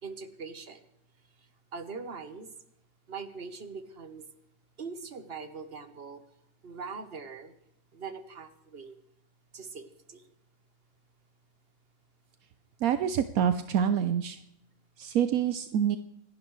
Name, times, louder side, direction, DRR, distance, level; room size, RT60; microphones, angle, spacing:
voice 1, 0.0-0.8 1.7-2.5 3.1-4.3 4.8-6.2 6.6-7.5 7.9-9.0 9.5-10.2, right 5 dB, 45° right, 9 dB, 1.4 m, -42 dB
voice 2, 12.8-14.4 15.0-16.0, right 9 dB, 80° right, 10 dB, 1.2 m, -26 dB
28.0 x 11.5 x 3.2 m, 0.78 s
omnidirectional pair, 1.5 m